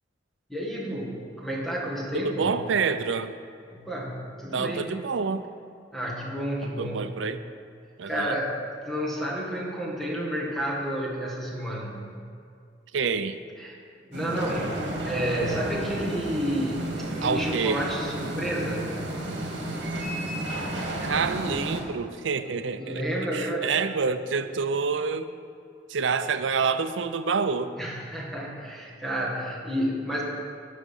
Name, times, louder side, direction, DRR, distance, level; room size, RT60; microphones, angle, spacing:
voice 1, 0.5-2.6 3.7-4.9 5.9-7.1 8.1-12.1 13.6-13.8 14.1-18.9 22.8-23.7 27.8-30.2, equal, ahead, -4 dB, 1.9 m, -30 dB
voice 2, 2.1-3.3 4.5-5.4 6.8-7.4 8.0-8.4 12.9-13.4 17.2-17.8 21.0-23.0 23.3-25.3 25.9-27.7, right 5 dB, 90° right, 11 dB, 0.5 m, -27 dB
sound 1, 14.1-21.8, right 1 dB, 70° right, 1.7 m, -32 dB
11.5 x 6.3 x 5.5 m, 2.4 s
head